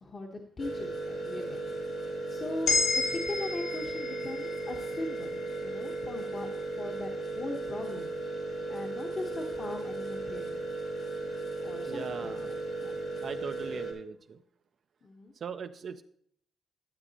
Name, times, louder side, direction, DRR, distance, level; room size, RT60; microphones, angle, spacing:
voice 1, 0.0-1.7 2.0-6.5 6.8-7.1 7.4-8.1 8.7-10.6 11.6-12.9 15.0-15.3, left 2 dB, 35° left, 1 dB, 1.0 m, -40 dB
sound 1, 0.6-13.9, right 2 dB, 60° left, 2.5 m, -36 dB
sound 2, 2.7-6.9, left 4 dB, 80° left, 1.8 m, -33 dB
voice 2, 11.9-12.6 13.2-14.4 15.4-16.0, right 6 dB, 55° right, 8 dB, 0.4 m, -40 dB
12.5 x 7.6 x 2.8 m, 0.65 s
cardioid pair, 100°, 0 cm